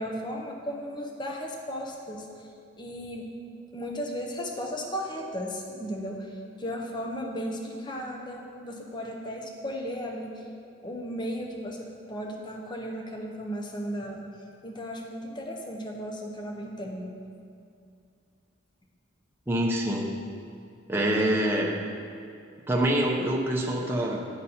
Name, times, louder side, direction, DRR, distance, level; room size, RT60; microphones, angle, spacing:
voice 1, 0.0-2.5 2.8-3.3 3.7-10.5 10.8-14.2 14.6-17.1, equal, 25° left, 1 dB, 0.7 m, -35 dB
voice 2, 19.5-20.1 20.9-21.8 22.7-24.3, right 1 dB, 10° right, -2 dB, 0.6 m, -25 dB
9.6 x 4.1 x 4.2 m, 2.4 s
head